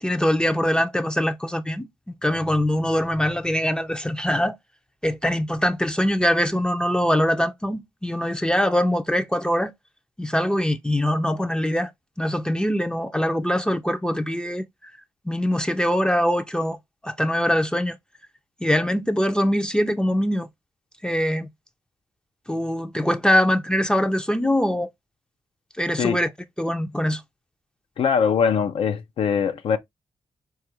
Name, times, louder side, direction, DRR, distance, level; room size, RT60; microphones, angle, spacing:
voice 1, 0.0-1.9 2.2-4.6 5.0-9.7 10.2-11.9 12.2-14.9 15.3-16.8 17.0-18.0 18.6-20.5 21.0-21.5 22.5-24.9 25.8-26.3 26.6-27.2, equal, 10° left, 0.4 m, -23 dB
voice 2, 28.0-29.8, left 6 dB, 75° left, 0.5 m, -22 dB
4.1 x 2.4 x 3.0 m
cardioid pair, 55°, 10 cm